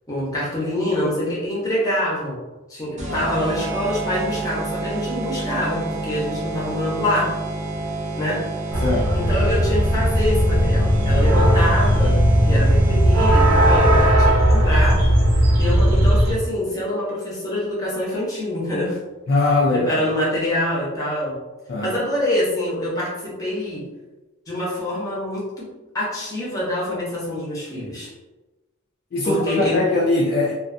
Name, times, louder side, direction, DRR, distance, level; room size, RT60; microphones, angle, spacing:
voice 1, 0.1-2.4 2.7-7.3 8.2-8.5 9.1-15.1 15.6-19.0 19.7-21.4 21.8-23.9 24.5-28.1 29.2-29.8, left 1 dB, 15° left, -6 dB, 0.7 m, -25 dB
sound 1, 3.0-14.4, right 2 dB, 35° right, 0.4 m, -29 dB
sound 2, 8.7-16.3, equal, 80° right, 0.6 m, -17 dB
voice 2, 8.8-9.2 19.3-20.0 21.7-21.9 29.1-30.5, left 2 dB, 45° left, -4 dB, 0.3 m, -21 dB
2.4 x 2.3 x 2.5 m, 1.1 s
head